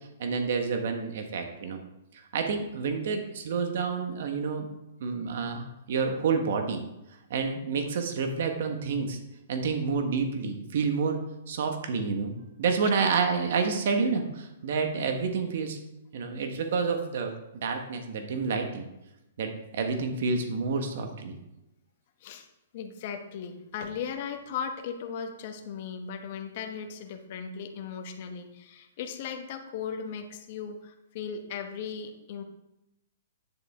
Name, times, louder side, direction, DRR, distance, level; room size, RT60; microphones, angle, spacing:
voice 1, 0.2-1.8 2.3-4.7 5.0-6.8 7.3-9.2 9.5-11.2 11.5-12.3 12.6-15.8 16.1-18.9 19.4-21.4, right 5 dB, 60° right, 5 dB, 1.5 m, -29 dB
voice 2, 22.7-32.4, left 7 dB, 45° left, 5 dB, 1.2 m, -37 dB
10.5 x 6.8 x 3.7 m, 0.89 s
hypercardioid pair, 150°, 0 cm